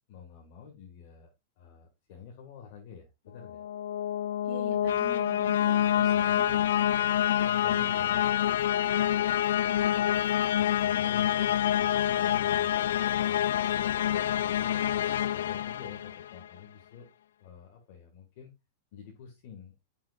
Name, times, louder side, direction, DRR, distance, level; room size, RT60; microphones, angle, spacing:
voice 1, 0.1-1.3 1.6-3.6 6.0-6.7 7.4-9.5 10.5-14.8 15.3-17.1 17.4-18.5 18.9-19.8, left 7 dB, 45° left, 1 dB, 2.0 m, -49 dB
sound 1, 3.4-16.5, left 11 dB, 85° left, 0.3 m, -27 dB
voice 2, 4.5-6.8 7.7-8.1 9.7-10.2, right 2 dB, 35° right, 0 dB, 3.4 m, -44 dB
11.0 x 5.6 x 2.5 m, 0.22 s
supercardioid pair, 170°, 0 cm